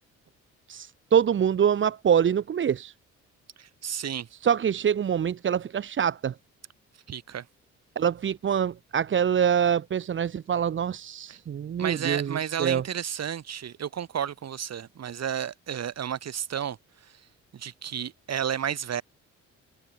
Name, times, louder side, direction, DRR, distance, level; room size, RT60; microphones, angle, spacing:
voice 1, 0.7-2.9 4.4-6.3 8.0-12.8, right 8 dB, 40° right, 0.8 m, -25 dB
voice 2, 3.6-4.3 7.1-7.4 11.3-11.4 11.8-16.8 17.5-19.0, right 9 dB, 60° right, 6.0 m, -32 dB
cardioid pair, 90°, 30 cm